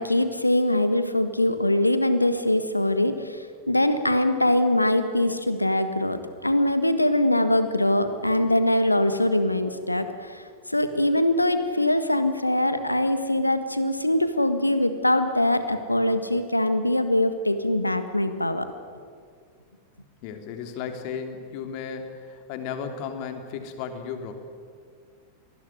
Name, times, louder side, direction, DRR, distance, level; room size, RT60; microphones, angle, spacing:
voice 1, 0.0-18.7, left 1 dB, 85° left, 10 dB, 1.6 m, -23 dB
voice 2, 20.2-24.3, left 6 dB, 45° left, 6 dB, 3.2 m, -34 dB
25.5 x 20.0 x 9.6 m, 2.1 s
figure-of-eight pair, 90°, 0 cm